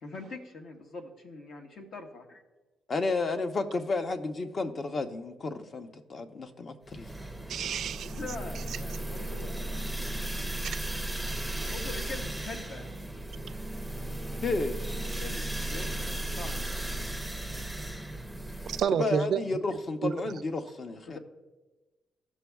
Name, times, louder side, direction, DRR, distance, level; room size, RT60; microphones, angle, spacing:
voice 1, 0.0-2.4 8.1-9.8 11.7-12.9 15.2-16.7 21.1-21.2, left 3 dB, 65° left, 1.1 m, -43 dB
voice 2, 2.9-7.1 14.4-14.9 19.0-21.2, left 3 dB, 40° left, 0.7 m, -32 dB
sound 1, 6.9-18.8, right 1 dB, 5° left, 0.6 m, -35 dB
voice 3, 7.5-8.2 8.5-9.4 13.4-13.6 18.6-19.4 20.0-20.3, right 8 dB, 70° right, 0.3 m, -31 dB
15.5 x 6.2 x 2.3 m
cardioid pair, 100°, 0 cm